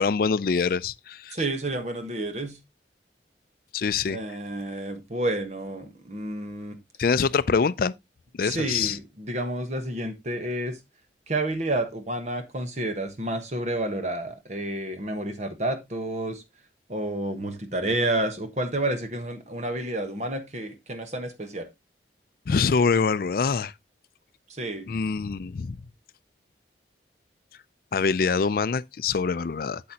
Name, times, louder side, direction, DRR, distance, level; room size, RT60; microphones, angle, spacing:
voice 1, 0.0-1.4 3.7-4.2 7.0-7.9 8.4-9.0 22.5-23.7 24.9-25.8 27.9-29.8, left 5 dB, 55° left, 0.4 m, -24 dB
voice 2, 1.3-2.6 4.1-6.8 8.4-10.8 11.3-16.4 16.9-21.7 24.5-24.9, right 1 dB, 40° right, 1.2 m, -30 dB
8.0 x 7.5 x 2.8 m
head